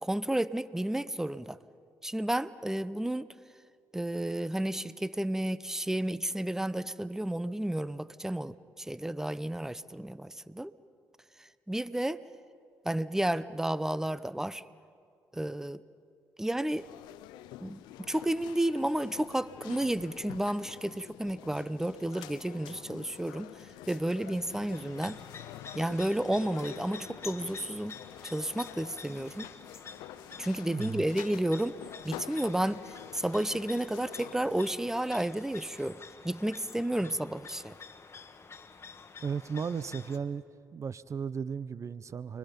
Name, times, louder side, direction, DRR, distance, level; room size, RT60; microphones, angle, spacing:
voice 1, 0.0-1.6 2.0-3.3 3.9-10.7 11.4-12.2 12.8-14.6 15.3-15.8 16.4-16.9 17.6-17.8 18.1-23.5 23.9-25.2 25.7-28.0 28.2-29.5 30.4-31.8 32.0-37.8, right 1 dB, 5° right, 17 dB, 0.8 m, -32 dB
sound 1, 16.8-34.7, left 14 dB, 90° left, 0.6 m, -48 dB
sound 2, 24.7-40.2, left 5 dB, 35° left, 1.6 m, -49 dB
voice 2, 30.7-31.0 39.2-40.4 40.7-42.4, right 6 dB, 45° right, 17 dB, 0.7 m, -35 dB
30.0 x 23.5 x 5.3 m, 2.2 s
supercardioid pair, 60°, 7 cm